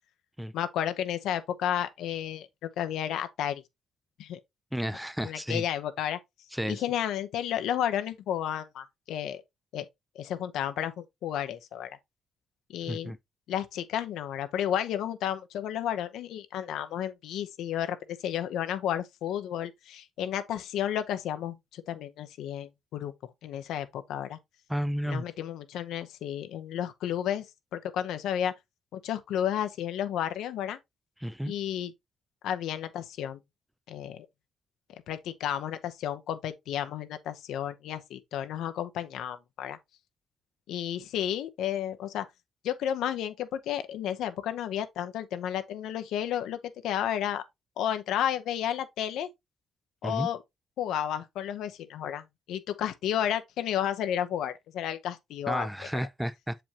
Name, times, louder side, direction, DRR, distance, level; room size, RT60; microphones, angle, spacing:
voice 1, 0.5-3.6 4.2-4.4 5.2-6.2 6.7-9.4 9.7-9.9 10.1-12.0 12.7-13.1 13.5-23.1 23.4-24.4 25.1-27.5 27.7-28.5 28.9-30.8 31.4-31.9 32.4-33.4 33.9-34.3 35.1-39.8 40.7-42.3 42.6-47.4 47.8-49.3 50.0-50.4 50.8-55.7, left 10 dB, 85° left, 0.8 m, -32 dB
voice 2, 4.7-5.6 6.5-6.8 12.9-13.2 24.7-25.2 31.2-31.5 50.0-50.3 55.5-56.6, equal, 5° right, 0.5 m, -32 dB
7.1 x 5.1 x 2.8 m
cardioid pair, 90°, 0 cm